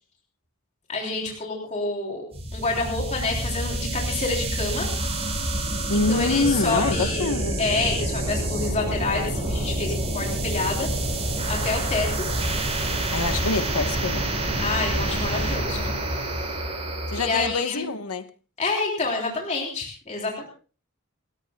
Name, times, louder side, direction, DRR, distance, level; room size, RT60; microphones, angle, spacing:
voice 1, 0.9-2.3 2.5-4.9 5.9-10.9 11.5-12.3 14.6-16.0 17.2-17.9 18.6-20.5, left 3 dB, 30° left, 3.4 m, -28 dB
sound 1, 2.3-17.6, right 1 dB, 30° right, 6.4 m, -27 dB
voice 2, 5.9-7.6 13.1-14.3 17.1-18.3, left 3 dB, 85° left, 1.1 m, -25 dB
29.0 x 14.0 x 2.3 m
head